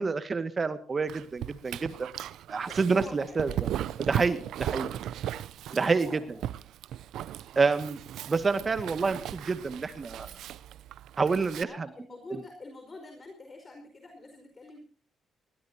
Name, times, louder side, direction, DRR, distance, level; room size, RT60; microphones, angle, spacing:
voice 1, 0.0-2.1 2.5-3.5 4.0-4.9 5.7-6.2 7.6-8.0 8.3-10.4 11.2-11.9 12.3-12.4, right 4 dB, 35° right, 11 dB, 1.8 m, -28 dB
Dog, 1.1-11.6, right 11 dB, 80° right, 0.6 m, -37 dB
voice 2, 2.6-3.6 5.7-6.4 11.6-14.8, left 2 dB, 30° left, 4 dB, 4.9 m, -46 dB
21.5 x 16.0 x 2.8 m, 0.41 s
cardioid pair, 90°, 0 cm